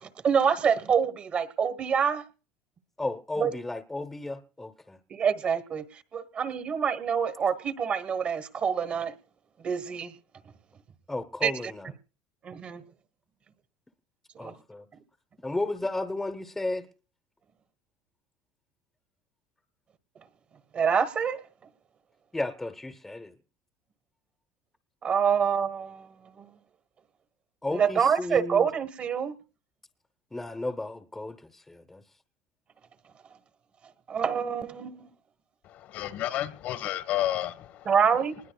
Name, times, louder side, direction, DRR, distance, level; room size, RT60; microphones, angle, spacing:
voice 1, 0.0-2.2 3.4-3.5 5.1-9.1 9.6-10.1 11.4-11.7 12.4-12.8 14.3-14.5 20.7-21.4 25.0-26.1 26.4-26.5 27.7-29.3 34.1-35.1 37.8-38.4, right 7 dB, 35° right, 1.2 m, -26 dB
voice 2, 3.0-5.0 11.1-11.9 14.4-14.9 15.4-16.9 22.3-23.4 27.6-28.7 30.3-32.0, left 2 dB, 10° left, 0.9 m, -33 dB
voice 3, 35.6-37.9, left 13 dB, 55° left, 1.3 m, -31 dB
26.5 x 20.5 x 2.3 m
supercardioid pair, 130°, 4 cm